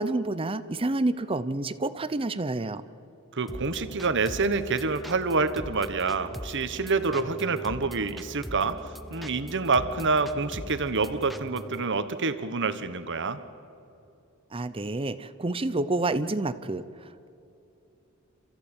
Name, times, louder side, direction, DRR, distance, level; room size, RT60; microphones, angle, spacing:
voice 1, 0.0-2.8 14.5-17.3, right 2 dB, 25° right, 14 dB, 0.6 m, -29 dB
voice 2, 3.3-8.8 9.1-13.4, right 4 dB, 55° right, 11 dB, 1.3 m, -27 dB
sound 1, 3.5-11.8, equal, ahead, 0.9 m, -41 dB
28.5 x 14.5 x 8.9 m, 2.8 s
head